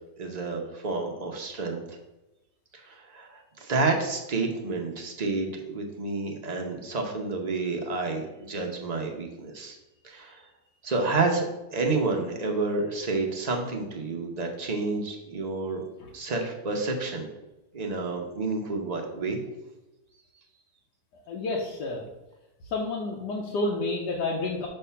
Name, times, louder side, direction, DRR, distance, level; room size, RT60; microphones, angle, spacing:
voice 1, 0.2-2.0 2.8-9.8 10.0-10.4 10.8-11.4 11.7-15.8 16.1-17.3 17.7-19.4, right 3 dB, 40° right, 1 dB, 0.6 m, -29 dB
voice 2, 21.3-22.1 22.7-24.7, left 2 dB, 80° left, -2 dB, 1.4 m, -30 dB
5.5 x 3.4 x 5.5 m, 0.98 s
omnidirectional pair, 1.8 m